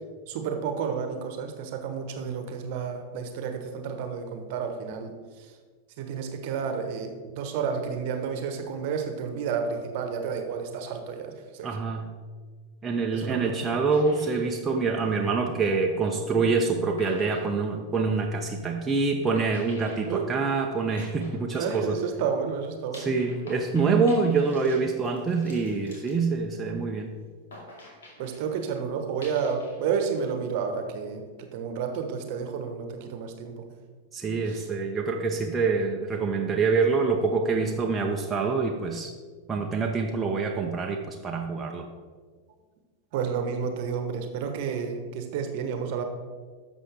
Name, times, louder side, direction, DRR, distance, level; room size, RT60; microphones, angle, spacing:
voice 1, 0.3-5.5 6.0-11.7 13.1-13.6 20.1-20.3 21.6-23.1 28.2-33.7 34.5-34.6 43.1-46.0, right 6 dB, 50° right, 6 dB, 1.1 m, -31 dB
voice 2, 11.6-12.1 12.8-22.0 22.9-27.1 34.1-39.1 39.5-41.9, right 4 dB, 15° right, 1 dB, 0.8 m, -26 dB
sound 1, 13.9-15.7 16.6-16.7 17.0-18.3 19.4-22.2 22.9-26.9 27.5-28.4 29.2-30.2 30.5-31.1, left 1 dB, 65° left, 2.3 m, -48 dB
11.0 x 7.1 x 3.5 m, 1.5 s
figure-of-eight pair, 90°, 0 cm